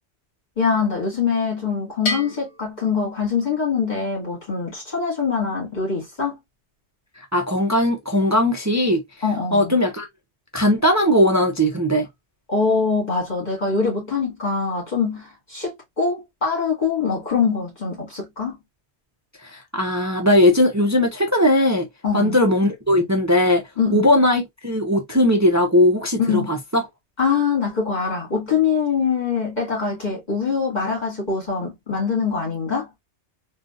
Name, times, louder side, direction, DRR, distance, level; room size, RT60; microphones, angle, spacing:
voice 1, 0.6-6.4 9.2-9.8 12.5-18.6 22.0-22.4 23.8-24.1 26.2-26.5 27.2-32.9, left 5 dB, 40° left, 2.1 m, -23 dB
Bell, 2.1-3.8, left 2 dB, 75° left, 1.1 m, -32 dB
voice 2, 7.2-9.0 9.5-10.1 10.5-12.1 19.4-21.9 22.1-23.6 23.9-26.8, left 1 dB, 20° right, 0.5 m, -19 dB
3.8 x 2.3 x 2.4 m
omnidirectional pair, 1.1 m